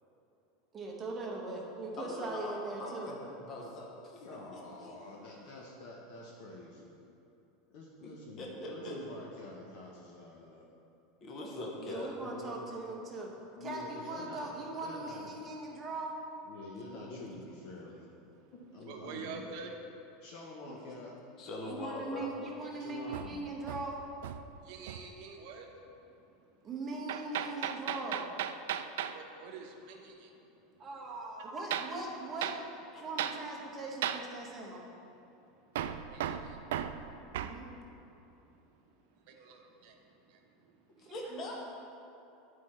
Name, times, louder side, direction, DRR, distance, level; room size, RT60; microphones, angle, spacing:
voice 1, 0.7-3.1 11.8-13.3 13.6-16.1 21.6-24.0 26.6-28.7 30.8-32.5 33.0-34.8 37.4-37.7 41.0-41.6, right 2 dB, 15° right, -2 dB, 0.9 m, -40 dB
voice 2, 2.0-2.5 2.8-5.1 8.4-9.0 11.2-12.1 21.4-22.3 32.9-33.0 41.0-41.6, left 1 dB, 25° left, -1 dB, 0.9 m, -42 dB
voice 3, 4.1-7.0 7.7-10.7 12.2-12.6 13.6-14.5 14.8-15.3 16.4-18.1 18.7-19.6 20.2-21.1 22.8-23.4, left 3 dB, 50° left, -3 dB, 0.8 m, -47 dB
voice 4, 18.9-19.7 24.5-25.7 29.1-30.3 36.0-37.4 38.1-38.5 39.1-40.7, right 5 dB, 50° right, 2 dB, 0.9 m, -48 dB
Hammer, 23.1-24.6 24.9-25.2 27.1-29.2 31.7-32.0 32.4-32.6 33.2-33.4 34.0-34.3 35.8-37.6, right 10 dB, 85° right, 0.3 m, -36 dB
11.0 x 4.6 x 4.3 m, 2.9 s
supercardioid pair, 180°, 0 cm